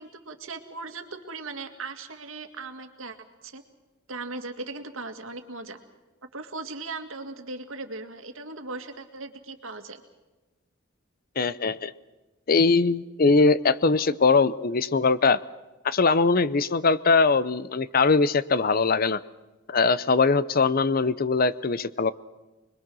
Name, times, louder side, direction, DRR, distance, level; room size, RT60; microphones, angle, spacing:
voice 1, 0.0-3.2 3.4-3.6 4.1-5.8 6.3-10.0, right 3 dB, 85° right, 7 dB, 2.1 m, -38 dB
voice 2, 11.4-11.9 12.5-15.4 15.8-19.2 19.7-22.1, left 4 dB, 45° left, 17 dB, 0.6 m, -21 dB
25.5 x 22.0 x 6.2 m, 1.1 s
head